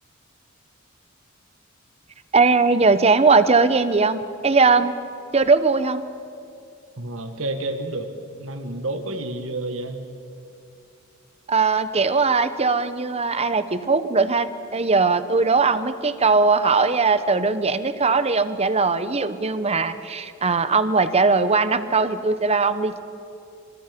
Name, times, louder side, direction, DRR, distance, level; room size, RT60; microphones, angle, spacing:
voice 1, 2.3-4.9 5.3-6.0 11.5-23.0, right 4 dB, 30° right, 12 dB, 1.0 m, -20 dB
voice 2, 7.0-8.1 8.4-10.0, right 2 dB, 75° right, 6 dB, 1.8 m, -29 dB
26.0 x 26.0 x 5.3 m, 2.5 s
head